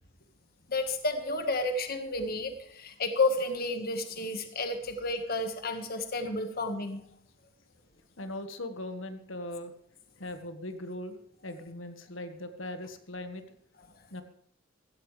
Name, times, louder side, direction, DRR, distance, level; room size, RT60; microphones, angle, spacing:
voice 1, 0.7-7.0, left 2 dB, 50° left, 6 dB, 1.7 m, -31 dB
voice 2, 8.2-9.7 10.2-11.2 11.4-13.4 14.1-14.2, left 1 dB, 80° left, 8 dB, 1.7 m, -39 dB
16.0 x 15.0 x 3.4 m, 0.71 s
head